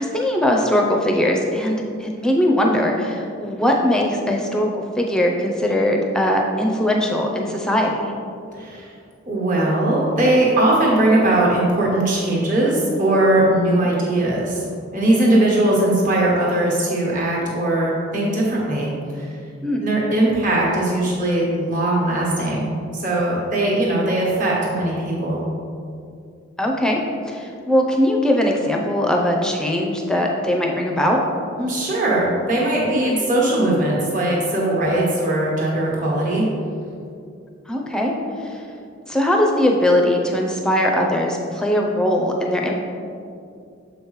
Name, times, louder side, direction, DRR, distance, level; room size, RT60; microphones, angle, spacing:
voice 1, 0.0-4.7 5.0-8.1 13.6-13.9 19.6-19.8 26.6-27.0 27.3-31.2 37.7-38.1 38.4-38.6 39.1-42.7, left 1 dB, 5° left, 0 dB, 0.5 m, -20 dB
voice 2, 9.3-14.7 14.9-19.3 19.8-25.5 31.6-36.5, right 1 dB, 40° right, -5 dB, 1.3 m, -20 dB
7.2 x 5.1 x 3.1 m, 2.5 s
head